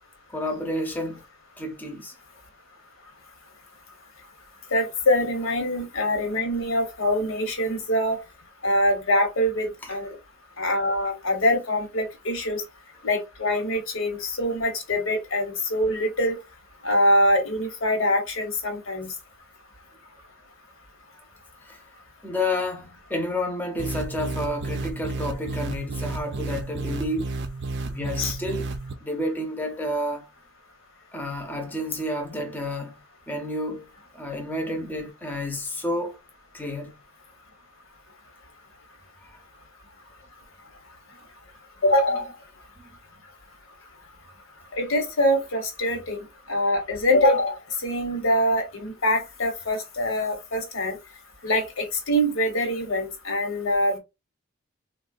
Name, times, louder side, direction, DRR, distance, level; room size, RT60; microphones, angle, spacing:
voice 1, 0.3-1.2 1.6-2.1 9.8-9.9 21.6-21.8 22.2-27.3 27.9-28.7 29.0-30.3 31.1-32.9 33.3-33.9 34.1-36.2 36.5-36.9, left 1 dB, 10° left, 0.6 m, -30 dB
voice 2, 4.7-8.2 8.6-10.2 10.6-12.6 13.0-16.4 16.8-19.1 28.2-28.4 41.8-42.3 44.8-51.0 51.4-54.0, left 1 dB, 75° left, 1.1 m, -24 dB
sound 1, 23.8-28.9, right 3 dB, 55° right, 0.5 m, -32 dB
3.6 x 2.3 x 2.4 m
head